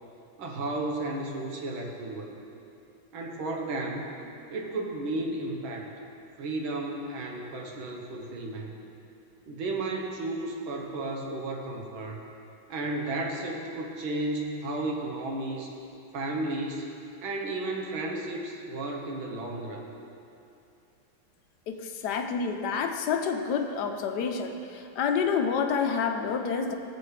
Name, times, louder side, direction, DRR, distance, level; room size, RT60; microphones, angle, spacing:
voice 1, 0.4-2.3 3.1-4.2 4.5-5.9 6.4-8.8 9.5-12.2 12.7-15.7 16.1-16.9 17.2-19.9, right 2 dB, 80° right, 1 dB, 1.9 m, -33 dB
voice 2, 21.7-26.7, left 6 dB, 65° left, 5 dB, 1.2 m, -28 dB
17.0 x 7.7 x 3.3 m, 2.7 s
omnidirectional pair, 2.2 m